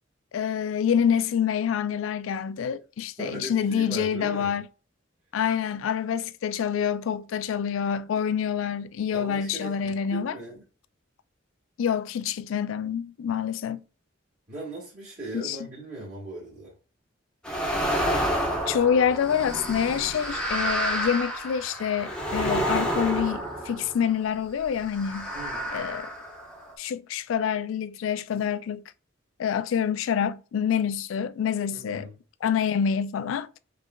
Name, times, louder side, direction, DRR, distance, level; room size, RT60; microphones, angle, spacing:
voice 1, 0.3-4.7 5.3-10.3 11.8-13.8 15.3-15.6 18.7-25.3 25.7-26.1 26.8-28.8 29.4-32.1 32.4-33.5, left 8 dB, 80° left, 0.3 m, -27 dB
voice 2, 3.2-4.6 9.1-10.6 14.5-16.7 25.3-25.8 31.7-32.1, right 2 dB, 40° right, 1.5 m, -39 dB
sound 1, 17.4-24.2 24.9-26.7, right 1 dB, 5° left, 0.9 m, -29 dB
4.8 x 3.4 x 2.2 m
head